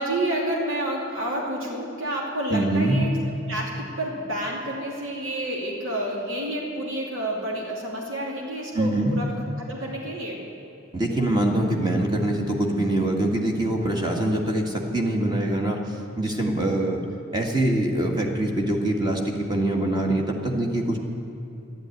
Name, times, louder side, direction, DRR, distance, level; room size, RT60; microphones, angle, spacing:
voice 1, 0.0-3.1 3.5-9.3 9.6-10.4, right 1 dB, 80° right, -3 dB, 2.8 m, -29 dB
voice 2, 2.5-3.0 8.7-9.2 10.9-15.8 16.2-17.0 17.3-21.0, right 1 dB, 20° right, 1 dB, 1.8 m, -24 dB
13.0 x 11.5 x 9.3 m, 2.8 s
head